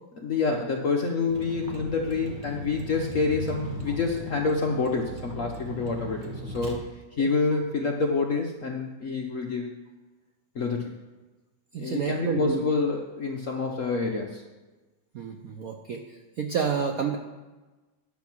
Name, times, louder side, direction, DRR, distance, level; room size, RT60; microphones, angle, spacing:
voice 1, 0.1-6.9 7.2-9.7 10.5-10.9 11.8-14.4, left 4 dB, 60° left, 1 dB, 0.8 m, -27 dB
Vehicle, 1.3-6.8, right 1 dB, 30° right, 1.2 m, -38 dB
voice 2, 11.7-12.6 15.1-16.0 16.4-17.2, right 6 dB, 70° right, 4 dB, 0.8 m, -29 dB
10.5 x 6.4 x 6.0 m, 1.2 s
omnidirectional pair, 2.3 m